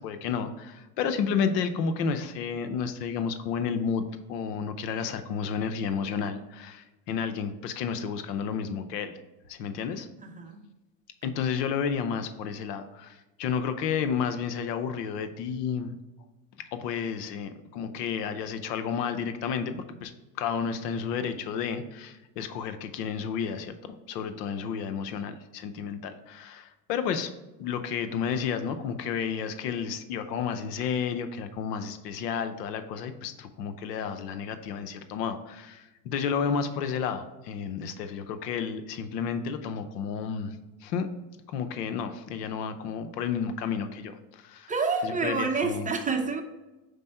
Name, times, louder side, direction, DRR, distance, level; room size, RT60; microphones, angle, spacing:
voice 1, 0.0-4.0 4.3-9.2 9.5-10.1 11.2-16.0 16.7-20.1 20.4-27.3 27.6-40.6 40.8-41.1 41.5-44.7 45.0-45.9, left 6 dB, 85° left, 10 dB, 0.8 m, -31 dB
voice 2, 10.2-10.6 44.7-46.4, right 4 dB, 15° right, 4 dB, 0.8 m, -28 dB
5.2 x 4.3 x 4.3 m, 1.0 s
supercardioid pair, 100°, 47 cm